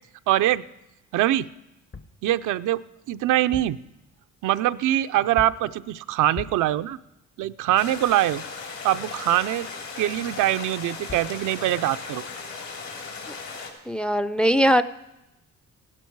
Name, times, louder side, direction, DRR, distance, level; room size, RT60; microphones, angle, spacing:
voice 1, 0.3-0.6 1.1-1.5 2.2-2.8 3.1-3.8 4.4-7.0 7.4-8.4 8.8-9.7 10.0-12.2, right 13 dB, 80° right, 11 dB, 0.5 m, -23 dB
sound 1, 1.7-2.2 3.3-3.9 5.4-5.7 6.3-6.8 10.8-10.9 11.1-11.4, left 4 dB, 35° left, 0.9 m, -39 dB
sound 2, 7.8-13.7, left 4 dB, 65° left, 3.6 m, -37 dB
voice 2, 13.9-14.8, equal, 5° left, 14 dB, 0.4 m, -20 dB
15.5 x 12.0 x 4.6 m, 0.93 s
cardioid pair, 90°, 30 cm